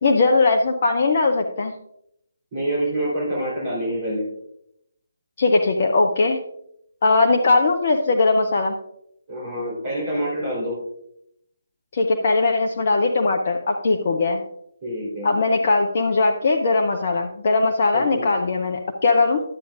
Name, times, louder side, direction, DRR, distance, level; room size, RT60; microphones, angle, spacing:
voice 1, 0.0-1.7 5.4-6.4 7.0-8.8 11.9-14.4 15.2-19.4, left 3 dB, 40° left, 2 dB, 0.6 m, -19 dB
voice 2, 2.5-4.3 9.3-10.8 14.8-15.3 17.9-18.2, equal, 30° right, -8 dB, 3.7 m, -26 dB
11.5 x 8.3 x 2.5 m, 0.76 s
figure-of-eight pair, 145°, 0 cm